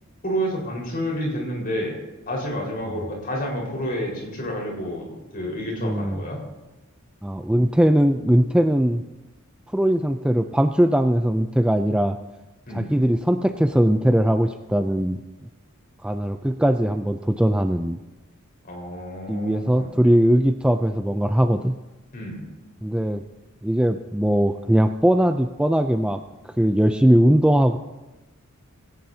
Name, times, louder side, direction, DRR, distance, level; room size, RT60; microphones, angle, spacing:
voice 1, 0.2-2.0 2.3-6.4 12.7-12.9 18.7-19.9 22.1-22.5, equal, 45° left, -1 dB, 4.8 m, -29 dB
voice 2, 5.8-6.2 7.2-9.0 9.7-12.2 12.7-15.2 16.0-18.0 19.3-21.7 22.8-23.2 23.6-26.2 26.6-27.8, equal, 5° right, 7 dB, 0.4 m, -20 dB
18.5 x 17.0 x 2.8 m, 1.1 s
head